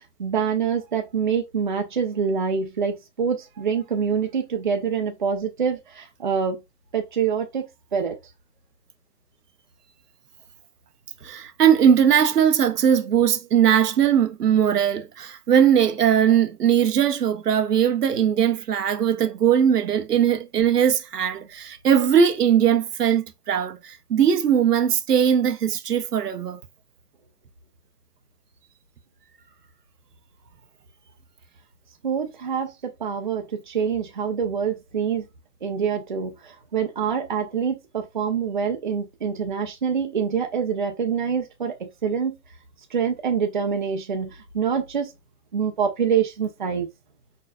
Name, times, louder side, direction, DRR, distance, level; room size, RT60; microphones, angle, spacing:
voice 1, 0.2-6.6 6.9-8.2 32.0-35.2 35.6-42.4 42.9-45.1 45.5-46.9, right 6 dB, 30° right, 0.8 m, -26 dB
voice 2, 11.2-26.6, right 8 dB, 75° right, 1.0 m, -20 dB
4.9 x 4.5 x 2.4 m
hypercardioid pair, 175°, 48 cm